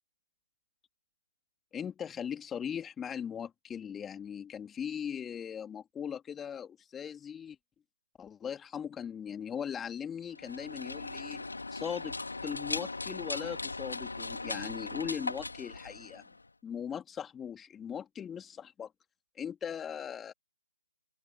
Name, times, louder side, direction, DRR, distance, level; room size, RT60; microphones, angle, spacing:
voice 1, 1.7-7.6 8.2-11.4 11.7-12.2 12.4-16.2 16.6-18.9 19.4-20.3, left 8 dB, 10° left, 3.5 m, -39 dB
sound 1, 10.3-16.5, left 3 dB, 80° left, 3.0 m, -39 dB
open air
figure-of-eight pair, 145°, 0 cm